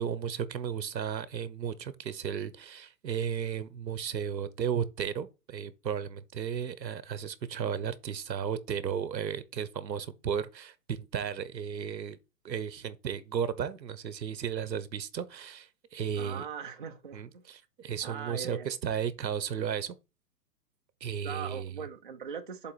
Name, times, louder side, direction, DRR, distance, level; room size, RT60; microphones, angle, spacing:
voice 1, 0.0-12.2 12.4-16.5 17.1-20.0 21.0-21.7, right 8 dB, 85° right, 1.1 m, -34 dB
voice 2, 16.2-17.4 18.0-18.7 21.2-22.7, right 7 dB, 30° right, 0.5 m, -40 dB
7.5 x 3.9 x 4.2 m
hypercardioid pair, 165°, 50 cm